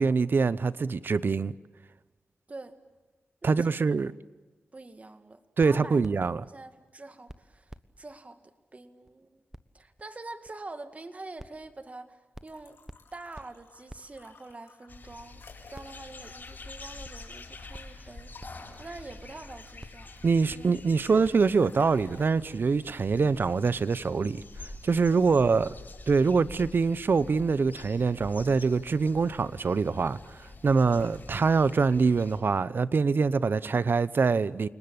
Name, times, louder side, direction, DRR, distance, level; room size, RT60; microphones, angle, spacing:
voice 1, 0.0-1.5 3.4-4.1 5.6-6.4 20.2-24.4 24.8-25.7 26.1-34.7, right 4 dB, 60° right, 0.8 m, -24 dB
voice 2, 3.4-4.0 4.7-6.1 6.4-9.4 9.7-12.8 13.1-15.4 15.7-18.3 18.8-20.1 20.4-20.7 25.1-25.7, right 2 dB, 35° right, 2.0 m, -45 dB
sound 1, 5.6-6.5 6.9-7.0 7.3-7.4 7.7-7.9 8.1-8.2 8.6-8.7 9.1-9.2 9.5-9.6 10.0-10.1 10.4-10.5 10.9-11.0 11.4-11.6 11.9-12.0 12.3-12.6 12.9-13.0 13.3-13.5 13.9-14.0 14.5-14.6 15.1-15.2 15.7-16.1 16.4-16.5 17.0-17.1 17.7-17.8 18.4-18.6 19.1-19.2 19.8-20.0 20.5-20.6 21.2-21.3, right 1 dB, 10° right, 1.2 m, -46 dB
sound 2, 12.4-17.9 18.3-20.4 21.4-22.3, left 4 dB, 80° left, 4.3 m, -53 dB
sound 3, 14.9-32.4, left 2 dB, 50° left, 7.4 m, -47 dB
30.0 x 19.5 x 8.7 m
cardioid pair, 55°, 4 cm